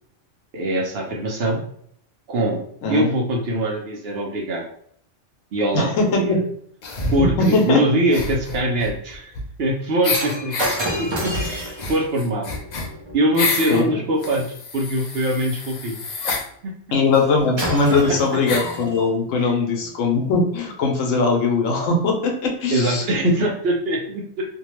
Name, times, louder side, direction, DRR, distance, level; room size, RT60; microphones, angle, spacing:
voice 1, 0.5-1.6 2.3-2.6 2.9-4.7 5.5-6.4 7.1-9.3 9.6-10.5 11.0-12.5 13.1-14.5 14.7-16.0 16.6-16.7 19.4-19.5 22.7-24.4, right 1 dB, 60° right, -1 dB, 0.7 m, -23 dB
voice 2, 5.7-6.3 7.2-7.8 13.7-14.0 16.9-23.0, left 3 dB, 85° left, 1 dB, 1.1 m, -20 dB
sound 1, 6.8-7.7 8.1-9.7 10.0-10.8 11.3-13.8 14.2-16.5 17.4-17.5 17.7-17.8 18.5-18.8, left 3 dB, 60° left, 0.4 m, -28 dB
Shatter, 10.1-14.5 17.1-17.3 17.6-19.1 19.8-20.0, equal, 40° right, 0.4 m, -30 dB
2.7 x 2.2 x 3.0 m, 0.64 s
omnidirectional pair, 1.3 m